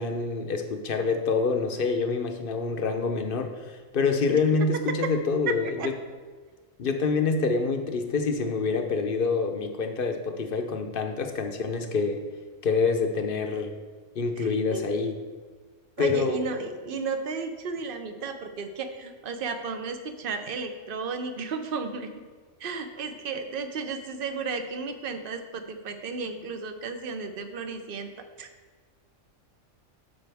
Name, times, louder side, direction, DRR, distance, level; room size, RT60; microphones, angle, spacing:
voice 1, 0.0-5.8 6.8-12.2 12.6-13.7 14.1-15.2 16.0-16.4, left 4 dB, 50° left, 5 dB, 0.8 m, -26 dB
voice 2, 5.5-5.9 14.4-14.8 16.0-22.1 22.6-28.1 28.4-28.5, right 4 dB, 50° right, 7 dB, 0.8 m, -33 dB
12.0 x 5.0 x 3.4 m, 1.4 s
omnidirectional pair, 1.3 m